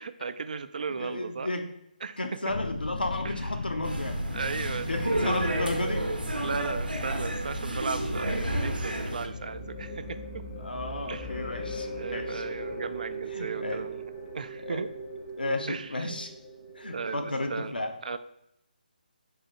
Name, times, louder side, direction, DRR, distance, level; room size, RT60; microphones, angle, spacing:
voice 1, 0.0-1.5 2.0-2.2 3.2-3.4 4.3-5.9 6.4-10.4 11.1-11.3 12.0-14.0 14.3-14.9 15.7-16.1 16.9-17.7 18.0-18.2, right 5 dB, 60° right, 12 dB, 0.3 m, -36 dB
voice 2, 1.0-1.7 2.2-4.2 4.9-6.0 10.6-12.4 13.3-13.8 14.6-14.8 15.4-16.3 16.8-17.9, left 2 dB, 85° left, 5 dB, 0.7 m, -33 dB
sound 1, 2.5-17.0 17.3-17.4, left 3 dB, 65° left, 0.3 m, -41 dB
sound 2, 3.8-9.3, right 1 dB, 90° right, 0.7 m, -31 dB
sound 3, 8.0-17.2, right 2 dB, 10° left, 0.6 m, -40 dB
3.9 x 2.8 x 4.3 m, 0.79 s
figure-of-eight pair, 150°, 5 cm